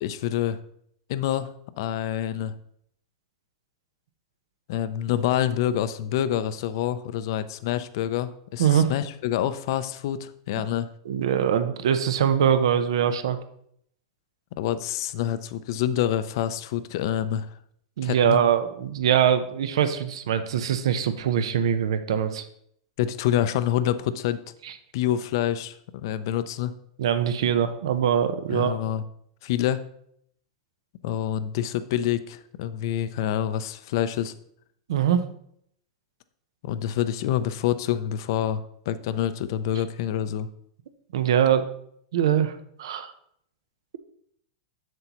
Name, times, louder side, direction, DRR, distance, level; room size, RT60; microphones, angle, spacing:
voice 1, 0.0-0.6 1.1-2.5 4.7-10.9 14.6-17.5 18.0-18.4 23.0-24.4 24.9-26.7 28.5-29.0 29.4-29.8 31.0-34.3 36.6-40.5, left 11 dB, 60° left, 13 dB, 0.5 m, -27 dB
voice 2, 8.6-8.9 11.1-13.4 18.0-22.4 24.6-24.7 27.0-28.8 34.9-35.2 41.1-41.6 42.1-43.1, right 9 dB, 80° right, 10 dB, 0.7 m, -23 dB
7.7 x 6.9 x 3.0 m, 0.69 s
supercardioid pair, 150°, 3 cm